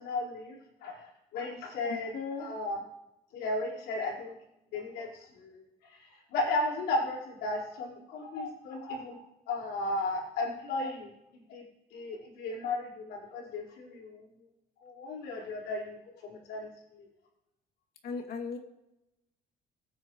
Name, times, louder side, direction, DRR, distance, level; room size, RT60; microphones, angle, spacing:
voice 1, 0.0-2.1 2.4-2.8 3.3-4.3 4.7-11.6 11.9-14.3 14.8-17.1, left 2 dB, 85° left, -3 dB, 4.8 m, -35 dB
voice 2, 1.9-2.5 18.0-18.6, left 5 dB, 65° left, 2 dB, 2.7 m, -37 dB
23.0 x 9.6 x 3.2 m, 0.91 s
cardioid pair, 110°, 17 cm